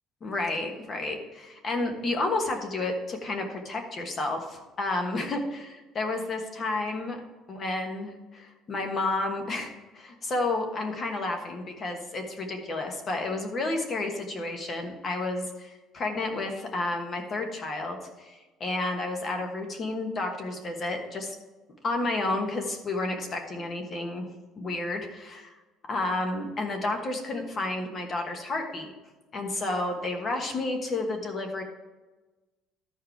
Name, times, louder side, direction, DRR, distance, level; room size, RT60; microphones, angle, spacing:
voice 1, 0.2-7.2 7.5-21.3 21.8-24.3 24.6-25.6 25.9-28.9 29.3-31.6, left 2 dB, 30° left, 4 dB, 1.2 m, -31 dB
13.5 x 4.7 x 4.5 m, 1.2 s
cardioid pair, 175°, 0 cm